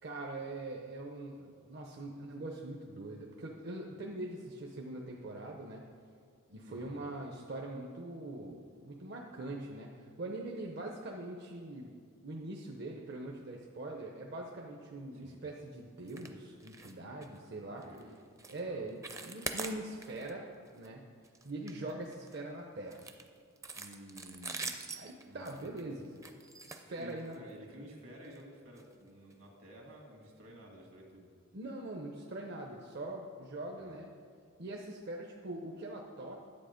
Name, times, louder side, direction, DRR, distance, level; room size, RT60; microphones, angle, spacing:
voice 1, 0.0-5.8 6.5-11.9 12.2-17.9 18.5-20.4 20.7-21.1 21.4-23.1 23.7-26.2 26.6-27.3 31.5-34.1 34.6-36.5, right 2 dB, 50° right, 0 dB, 0.7 m, -43 dB
voice 2, 6.6-7.1 15.1-15.4 17.7-18.1 18.7-18.9 25.2-25.6 27.0-31.3 33.8-34.0, equal, 70° right, 0 dB, 2.1 m, -52 dB
sound 1, 16.1-16.3 16.6-16.9 17.2-17.4 17.8-18.0 18.4-18.6 18.9-20.3 20.7-20.9 21.2-22.4 22.9-27.5 28.2-28.4 28.8-28.9 29.3-29.4, right 3 dB, 15° right, 0.5 m, -43 dB
11.0 x 7.7 x 5.1 m, 2.1 s
head